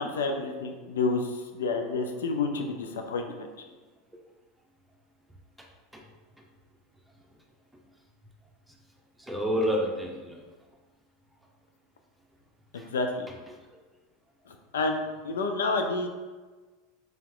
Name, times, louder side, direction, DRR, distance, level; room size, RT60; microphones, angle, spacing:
voice 1, 0.0-3.5 12.7-13.3 14.5-16.1, left 3 dB, 85° left, 5 dB, 0.4 m, -29 dB
voice 2, 9.2-10.4 12.8-12.9 13.3-13.6, equal, 5° right, 0 dB, 0.7 m, -30 dB
3.4 x 2.9 x 3.7 m, 1.3 s
hypercardioid pair, 95°, 0 cm